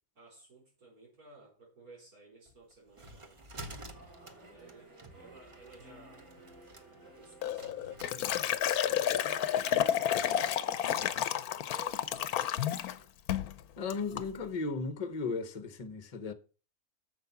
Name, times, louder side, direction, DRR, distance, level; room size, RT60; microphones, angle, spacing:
voice 1, 0.1-3.4 4.2-6.3 7.0-8.4 9.3-13.1, right 3 dB, 90° right, 4.6 m, -56 dB
sound 1, 2.5-9.8, right 1 dB, 25° right, 0.8 m, -51 dB
sound 2, 3.5-10.7, right 2 dB, 55° right, 2.7 m, -56 dB
Liquid, 7.4-13.0 13.3-13.5 13.9-14.3, left 10 dB, 90° left, 1.2 m, -31 dB
voice 2, 13.8-16.3, left 4 dB, 30° left, 0.9 m, -35 dB
8.0 x 7.0 x 5.8 m
omnidirectional pair, 1.5 m